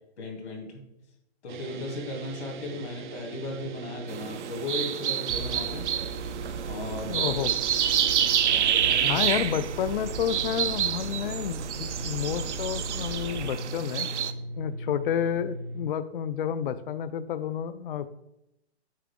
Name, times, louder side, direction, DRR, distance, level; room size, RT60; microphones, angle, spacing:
voice 1, 0.2-0.8 1.4-5.9 6.6-7.3 8.4-9.3, left 2 dB, 75° left, 1 dB, 2.8 m, -36 dB
sound 1, 1.5-15.8, right 2 dB, 45° right, 0.6 m, -39 dB
sound 2, 4.1-14.3, right 9 dB, 90° right, 0.6 m, -28 dB
sound 3, 5.3-13.5, right 5 dB, 65° right, 1.0 m, -40 dB
voice 2, 7.1-7.5 9.1-14.1 14.6-18.1, left 9 dB, 55° left, 13 dB, 0.4 m, -30 dB
7.5 x 5.7 x 3.6 m, 0.83 s
hypercardioid pair, 155°, 34 cm